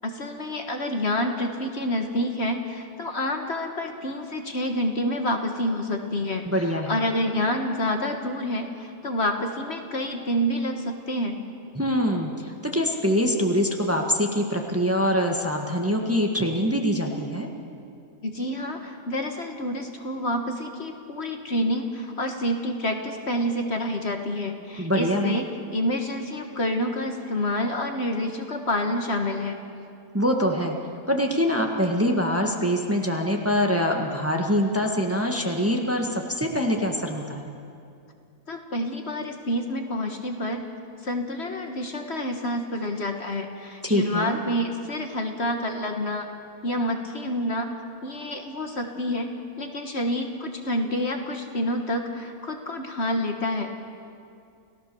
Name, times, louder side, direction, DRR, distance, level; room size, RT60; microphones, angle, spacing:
voice 1, 0.0-11.4 18.2-25.5 25.7-29.6 38.5-40.6 41.0-46.3 46.6-47.7 48.0-49.3 49.6-53.7, left 1 dB, 45° left, 4 dB, 1.7 m, -28 dB
voice 2, 6.5-7.0 11.8-17.5 24.8-25.4 30.1-30.8 31.1-37.5 43.8-44.4, equal, 10° right, 2 dB, 1.6 m, -24 dB
29.5 x 16.5 x 7.0 m, 2.5 s
omnidirectional pair, 1.6 m